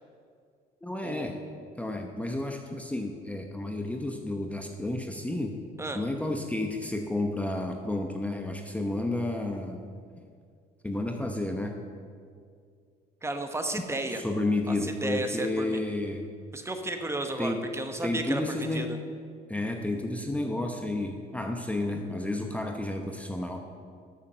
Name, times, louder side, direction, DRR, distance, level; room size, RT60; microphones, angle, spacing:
voice 1, 0.8-1.4 1.8-5.5 5.9-9.8 10.8-11.8 14.1-16.2 17.4-17.6 18.0-18.9 19.5-23.6, left 2 dB, 10° left, 3 dB, 0.9 m, -31 dB
voice 2, 13.2-14.2 14.7-15.8 16.5-18.9, right 2 dB, 15° right, 6 dB, 1.1 m, -33 dB
13.0 x 7.1 x 6.7 m, 2.2 s
cardioid pair, 110°, 17 cm